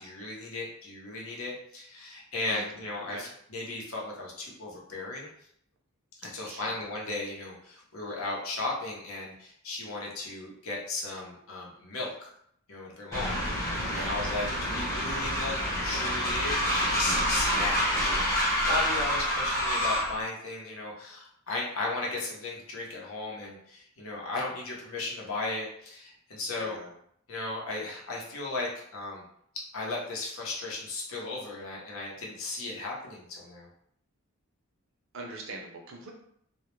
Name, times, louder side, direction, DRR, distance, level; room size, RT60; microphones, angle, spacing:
voice 1, 0.0-5.3 6.2-12.3 12.7-26.8 27.3-29.2 29.7-33.7, left 2 dB, 70° left, -3 dB, 0.7 m, -36 dB
voice 2, 6.4-6.8 13.8-14.1 26.5-26.9 35.1-36.1, right 2 dB, 55° right, 0 dB, 0.5 m, -42 dB
Train, 13.1-20.2, equal, 15° left, 0.7 m, -28 dB
2.2 x 2.0 x 3.0 m, 0.69 s
head